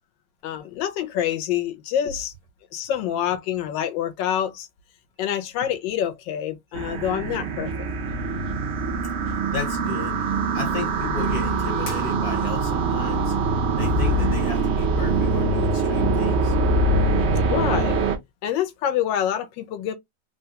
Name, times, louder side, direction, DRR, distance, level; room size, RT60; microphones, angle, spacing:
voice 1, 0.4-2.3 2.7-4.7 5.2-7.9 17.5-18.0 18.4-19.9, left 10 dB, 85° left, 1.4 m, -26 dB
sound 1, 6.7-18.2, right 3 dB, 75° right, 0.6 m, -23 dB
voice 2, 9.2-13.4 13.8-16.5, left 4 dB, 55° left, 1.6 m, -34 dB
3.5 x 2.2 x 2.8 m
omnidirectional pair, 2.0 m